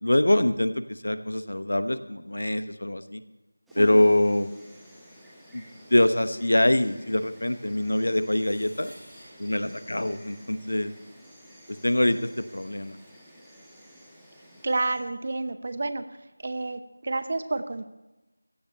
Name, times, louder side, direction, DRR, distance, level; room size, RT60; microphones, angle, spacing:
voice 1, 0.0-3.2 3.7-4.5 5.5-5.6 5.9-8.9 9.4-10.9 11.7-13.0, left 1 dB, 60° left, 12 dB, 1.0 m, -24 dB
Insect, 3.7-15.0, equal, ahead, 1.4 m, -52 dB
sound 1, 8.2-10.8 12.5-12.6 12.7-13.1, equal, 90° right, 6.6 m, -54 dB
voice 2, 14.6-16.0 16.4-17.9, right 2 dB, 35° right, 11 dB, 0.8 m, -30 dB
15.5 x 6.7 x 9.6 m, 1.0 s
figure-of-eight pair, 170°, 0 cm